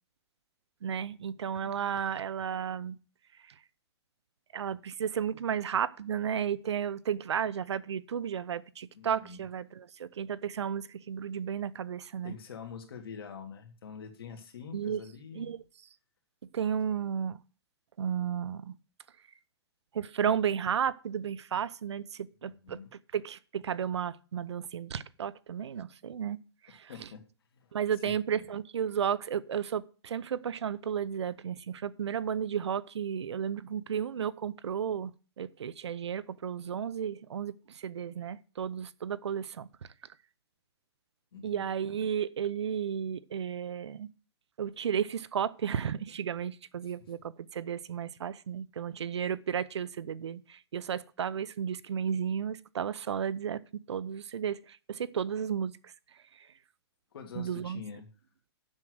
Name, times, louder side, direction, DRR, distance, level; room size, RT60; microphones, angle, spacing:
voice 1, 0.8-3.0 4.5-12.3 14.7-15.0 15.3-15.6 16.5-17.4 18.0-18.7 19.9-22.8 23.1-26.4 26.6-27.1 27.7-35.1 35.4-39.7 41.4-44.1 44.6-53.6 53.9-55.9 57.4-57.8, right 8 dB, 85° right, 0.7 m, -33 dB
voice 2, 1.6-2.0 8.9-9.4 12.2-15.5 22.4-22.9 26.9-27.2 27.5-27.8 28.0-28.4 41.3-41.7 46.8-46.9 57.1-58.1, left 6 dB, 60° left, 2.1 m, -46 dB
7.5 x 6.4 x 7.7 m
hypercardioid pair, 175°, 14 cm